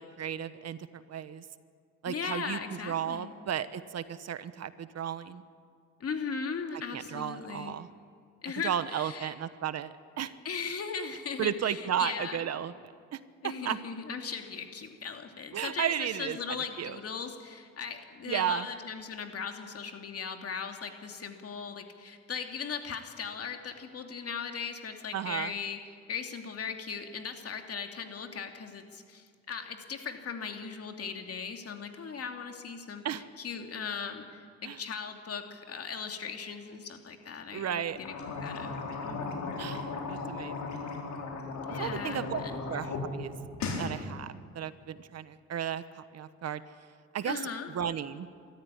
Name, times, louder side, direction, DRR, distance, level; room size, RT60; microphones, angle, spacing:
voice 1, 0.0-1.4 2.0-5.4 6.9-7.9 8.6-10.3 11.4-13.8 15.5-17.0 18.2-18.7 25.1-25.5 33.0-33.2 34.6-34.8 37.5-38.0 39.6-40.9 41.7-42.4 42.7-43.4 43.8-46.6 47.1-47.4 47.7-48.3, right 9 dB, 55° right, 14 dB, 1.1 m, -34 dB
voice 2, 2.1-3.3 6.0-7.7 8.4-9.3 10.4-12.4 13.4-25.8 26.1-33.0 33.4-38.1 38.4-38.8 39.0-39.6 41.6-42.6 47.2-47.7, left 6 dB, 50° left, 5 dB, 2.7 m, -38 dB
sound 1, 37.9-43.0 43.3-43.9, left 4 dB, 70° left, 4.3 m, -36 dB
24.0 x 14.0 x 9.8 m, 2.1 s
cardioid pair, 90°, 30 cm